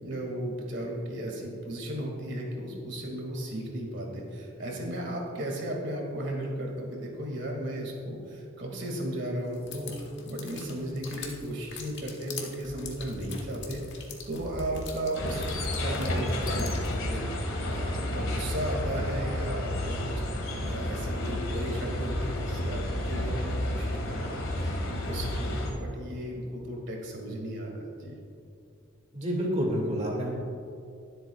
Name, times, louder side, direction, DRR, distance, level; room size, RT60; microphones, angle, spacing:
voice 1, 0.0-20.1 20.6-24.0 24.3-28.2, right 1 dB, 55° right, 0 dB, 2.2 m, -35 dB
sound 1, 9.5-17.0, left 3 dB, 55° left, 1.4 m, -42 dB
sound 2, 15.1-25.7, left 1 dB, 70° left, 1.8 m, -31 dB
voice 2, 29.1-30.3, equal, 30° right, -3 dB, 2.1 m, -28 dB
23.5 x 8.0 x 2.4 m, 2.5 s
head